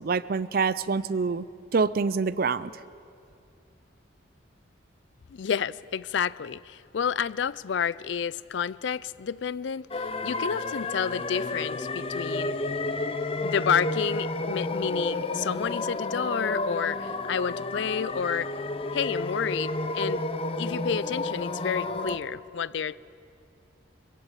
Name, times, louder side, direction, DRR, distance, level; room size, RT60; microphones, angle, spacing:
voice 1, 0.0-1.4 1.7-2.7, right 4 dB, 50° right, 0.5 m, -26 dB
voice 2, 5.3-12.5 13.4-18.5 18.9-20.2 20.6-23.0, left 7 dB, 65° left, 0.4 m, -30 dB
sound 1, 9.9-22.2, left 2 dB, 30° left, 0.7 m, -31 dB
22.5 x 15.5 x 8.2 m
head